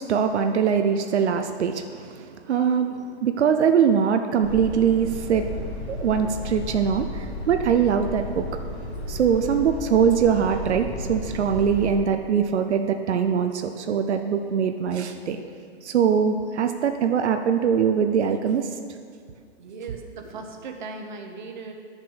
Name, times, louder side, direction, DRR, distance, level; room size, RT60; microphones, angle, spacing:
voice 1, 0.0-5.5 5.9-8.5 9.1-15.4 15.8-18.7, right 7 dB, 80° right, 6 dB, 0.7 m, -22 dB
sound 1, 4.4-11.9, left 1 dB, 5° left, 1.2 m, -33 dB
voice 2, 19.6-21.7, right 4 dB, 45° right, 4 dB, 0.9 m, -38 dB
10.5 x 6.7 x 4.8 m, 2.2 s
hypercardioid pair, 180°, 33 cm